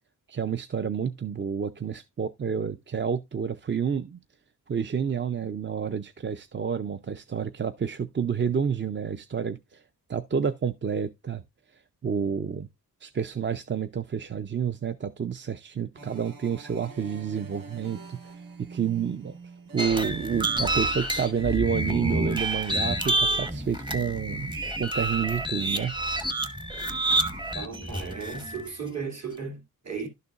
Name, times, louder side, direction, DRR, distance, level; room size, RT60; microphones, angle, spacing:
voice 1, 0.3-4.2 4.7-9.8 10.1-11.4 12.0-12.7 13.0-18.2 18.7-19.4 19.7-24.5 24.8-25.9, right 7 dB, 35° right, 0.5 m, -29 dB
sound 1, 15.9-21.6, right 3 dB, 70° right, 1.6 m, -46 dB
sound 2, 19.8-28.7, right 1 dB, 15° right, 1.0 m, -28 dB
voice 2, 27.5-30.1, right 5 dB, 50° right, 2.5 m, -35 dB
12.0 x 6.6 x 2.4 m
wide cardioid pair, 145°, 34 cm